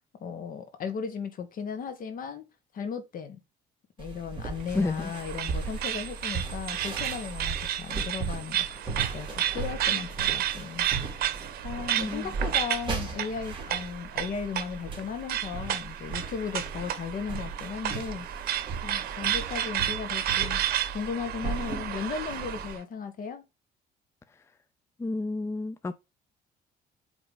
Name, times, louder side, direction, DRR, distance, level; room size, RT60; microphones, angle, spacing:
voice 1, 0.2-2.4 2.7-3.4 4.0-10.9 11.6-18.3 18.8-20.6 20.9-23.4, left 6 dB, 55° left, 1.8 m, -36 dB
sound 1, 4.0-22.8, right 4 dB, 30° right, 2.9 m, -37 dB
sound 2, 4.6-22.8, right 11 dB, 65° right, 1.0 m, -32 dB
voice 2, 4.7-5.1 12.0-12.3 25.0-25.9, left 2 dB, 15° left, 0.5 m, -30 dB
8.6 x 3.7 x 3.4 m
cardioid pair, 110°, 17 cm